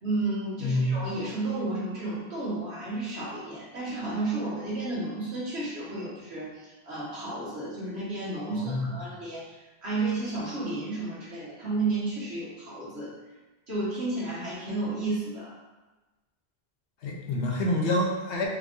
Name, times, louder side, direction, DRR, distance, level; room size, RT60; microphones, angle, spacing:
voice 1, 0.0-13.1 13.7-15.5, right 2 dB, 70° right, -8 dB, 1.8 m, -32 dB
voice 2, 0.6-1.0 8.5-8.9 17.0-18.5, left 1 dB, 80° left, -1 dB, 1.1 m, -27 dB
4.5 x 2.5 x 3.6 m, 1.2 s
omnidirectional pair, 1.1 m